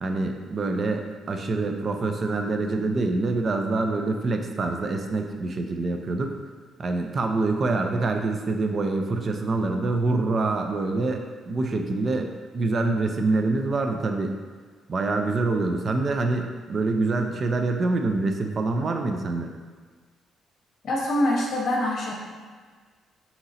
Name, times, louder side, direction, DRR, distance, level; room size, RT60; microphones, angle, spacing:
voice 1, 0.0-6.3 6.8-14.4 14.9-19.5, right 3 dB, 45° right, 4 dB, 0.5 m, -26 dB
voice 2, 20.8-22.2, left 1 dB, 55° left, -2 dB, 0.8 m, -24 dB
3.8 x 2.9 x 4.1 m, 1.5 s
cardioid pair, 90°, 0 cm